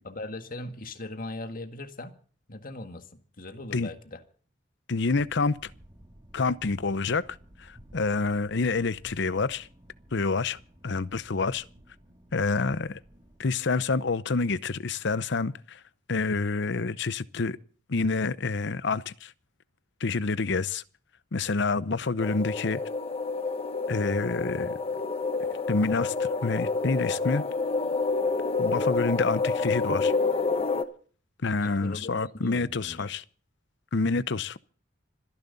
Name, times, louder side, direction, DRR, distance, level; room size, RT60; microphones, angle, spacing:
voice 1, 0.0-2.1 2.5-4.2 31.6-33.1, left 2 dB, 45° left, 1.8 m, -39 dB
voice 2, 4.9-5.7 6.3-7.3 7.6-9.7 10.1-10.6 10.8-11.6 12.3-13.0 13.4-15.8 16.1-17.6 17.9-19.3 20.0-20.8 21.3-22.8 23.9-24.8 25.7-27.4 28.6-30.1 31.4-33.2 33.9-34.6, left 4 dB, 65° left, 0.7 m, -27 dB
sound 1, 5.1-13.4, equal, 20° right, 2.4 m, -54 dB
sound 2, 22.2-30.8, left 4 dB, 30° left, 1.0 m, -28 dB
26.0 x 10.5 x 4.0 m
head